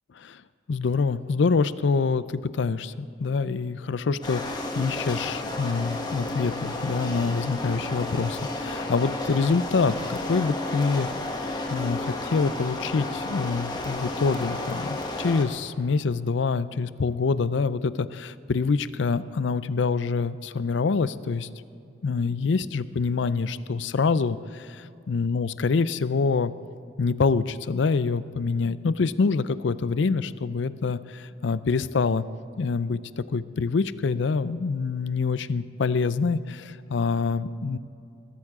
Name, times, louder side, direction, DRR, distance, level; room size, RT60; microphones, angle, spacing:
voice 1, 0.7-11.1 11.7-21.5 22.0-26.5 27.0-32.2 32.6-33.0 33.3-37.8, left 4 dB, 65° left, 16 dB, 0.5 m, -26 dB
sound 1, 4.2-15.5, left 2 dB, 20° left, 1.3 m, -32 dB
21.0 x 13.0 x 3.7 m, 2.7 s
head